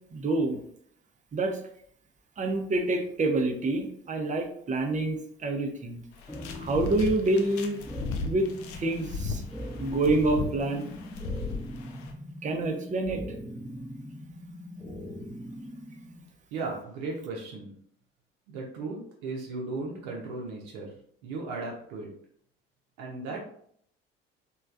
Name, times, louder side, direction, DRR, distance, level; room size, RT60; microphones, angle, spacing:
voice 1, 0.1-0.6 1.3-1.6 2.4-6.0 6.6-7.8 8.2-8.5 8.8-9.4 9.8-10.9 12.4-13.2, right 2 dB, 25° right, 4 dB, 0.6 m, -27 dB
sound 1, 6.1-12.1, left 3 dB, 60° left, 0.5 m, -36 dB
sound 2, 6.3-16.3, left 1 dB, 5° left, 0.8 m, -41 dB
voice 2, 16.5-17.7 18.5-20.9 21.2-22.1 23.0-23.4, right 3 dB, 65° right, -1 dB, 0.7 m, -36 dB
3.1 x 2.3 x 2.4 m, 0.65 s
figure-of-eight pair, 50°, 29 cm